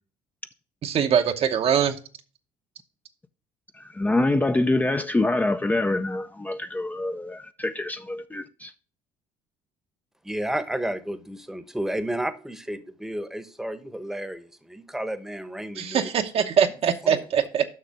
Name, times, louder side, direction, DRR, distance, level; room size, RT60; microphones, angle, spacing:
voice 1, 0.8-2.0 15.8-17.6, right 8 dB, 55° right, 0.9 m, -22 dB
voice 2, 3.7-8.7, left 2 dB, 15° left, 0.5 m, -25 dB
voice 3, 10.2-16.1 17.0-17.2, right 1 dB, 5° right, 1.0 m, -32 dB
6.6 x 5.9 x 5.8 m
supercardioid pair, 80°, 12 cm